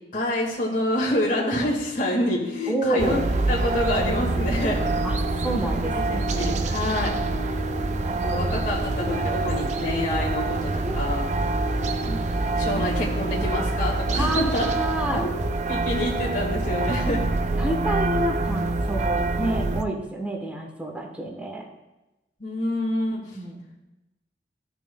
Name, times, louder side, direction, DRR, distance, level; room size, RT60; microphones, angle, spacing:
voice 1, 0.1-3.2 3.5-4.8 5.7-7.1 8.2-10.7 11.0-11.3 12.5-14.7 15.1-15.4 15.7-17.2 22.4-23.2, left 1 dB, 45° left, -3 dB, 1.7 m, -27 dB
voice 2, 2.7-3.2 5.0-5.2 5.4-6.5 8.3-8.4 10.8-11.0 12.0-12.2 12.7-12.8 14.2-15.3 17.6-21.7 23.3-23.6, right 1 dB, 10° right, 0 dB, 1.0 m, -29 dB
sound 1, 3.0-19.8, right 2 dB, 40° right, 0.4 m, -26 dB
Organ, 4.0-15.0, right 1 dB, 85° left, 0.9 m, -38 dB
13.5 x 6.1 x 2.2 m, 1.0 s
head